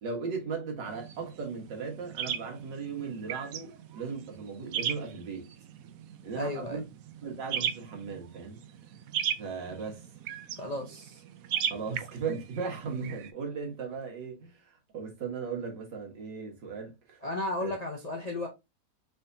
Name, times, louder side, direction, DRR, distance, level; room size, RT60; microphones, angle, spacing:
voice 1, 0.0-5.5 6.2-6.8 7.2-8.6 9.4-10.0 11.7-17.2 17.6-17.7, right 5 dB, 90° right, 2.1 m, -37 dB
sound 1, 0.9-13.3, right 9 dB, 65° right, 0.9 m, -37 dB
voice 2, 6.3-6.8 10.6-11.2 17.2-18.5, left 1 dB, 35° left, 0.7 m, -34 dB
4.9 x 3.5 x 2.7 m
omnidirectional pair, 1.9 m